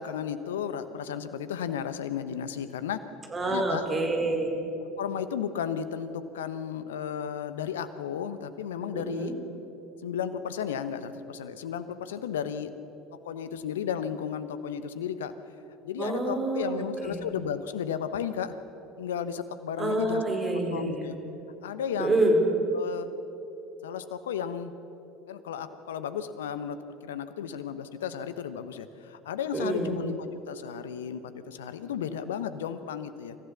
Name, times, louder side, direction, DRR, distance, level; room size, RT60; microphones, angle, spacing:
voice 1, 0.0-3.0 3.4-3.8 5.0-9.3 10.0-12.7 13.2-15.3 15.8-18.5 19.0-20.2 20.7-21.1 21.6-22.2 22.7-23.1 23.8-24.7 25.3-33.4, left 8 dB, 75° left, 12 dB, 1.0 m, -34 dB
voice 2, 3.3-4.5 8.9-9.3 16.0-17.3 19.8-21.1 22.0-22.4 29.5-29.9, right 2 dB, 25° right, 2 dB, 4.5 m, -27 dB
28.0 x 15.0 x 6.8 m, 2.9 s
figure-of-eight pair, 70°, 0 cm